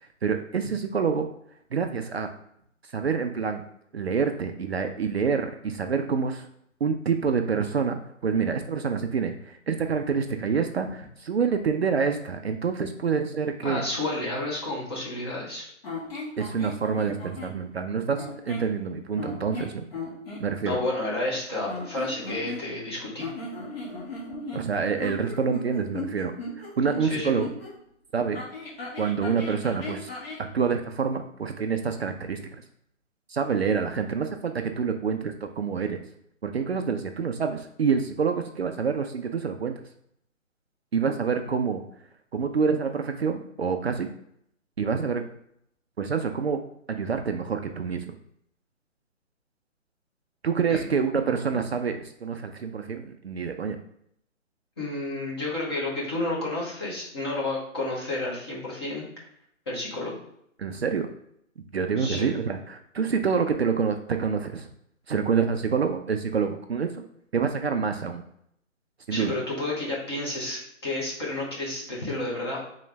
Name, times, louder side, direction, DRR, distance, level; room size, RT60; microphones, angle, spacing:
voice 1, 0.2-1.3 1.7-2.3 2.9-3.6 3.9-6.5 6.8-13.8 16.4-19.9 20.4-20.8 24.5-26.3 26.6-27.5 28.1-28.4 29.0-30.1 30.4-32.4 33.3-36.0 36.4-39.7 40.9-41.8 42.3-44.1 44.8-45.2 46.0-46.6 46.9-48.0 50.4-53.8 60.6-61.1 61.7-64.7 65.1-67.0 67.3-68.2 69.1-69.3, right 6 dB, 55° right, 6 dB, 0.4 m, -27 dB
voice 2, 13.6-15.6 20.6-23.3 27.0-27.3 50.7-50.9 54.8-59.1 59.7-60.2 62.0-62.2 69.1-72.6, left 2 dB, 20° left, -4 dB, 0.8 m, -31 dB
sound 1, 15.8-17.6 18.1-18.7 19.2-20.4 21.6-22.9 23.2-27.7 28.3-30.5, left 3 dB, 45° left, 1.5 m, -37 dB
3.7 x 3.1 x 3.3 m, 0.72 s
hypercardioid pair, 160°, 40 cm